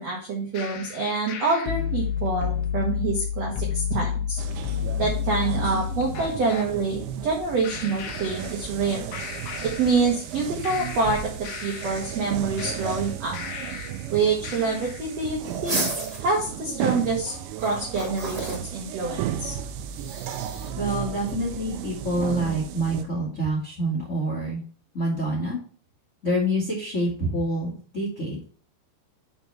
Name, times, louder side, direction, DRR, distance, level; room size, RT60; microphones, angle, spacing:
voice 1, 0.0-4.4 5.0-9.1 9.6-13.4 14.1-15.8 16.2-17.3 17.6-19.5, right 3 dB, 65° right, -1 dB, 1.6 m, -26 dB
sound 1, 0.5-6.7 7.6-8.9 9.1-10.3 10.6-14.1 14.4-15.1, left 8 dB, 80° left, 1.8 m, -31 dB
sound 2, 4.4-23.0, right 10 dB, 85° right, 2.9 m, -34 dB
sound 3, 15.4-16.2 17.5-18.6 20.0-20.7, right 3 dB, 35° right, 1.9 m, -31 dB
voice 2, 20.7-24.6 24.9-25.6 26.2-28.4, right 1 dB, 30° left, -4 dB, 1.5 m, -27 dB
7.0 x 4.6 x 5.6 m, 0.42 s
omnidirectional pair, 5.1 m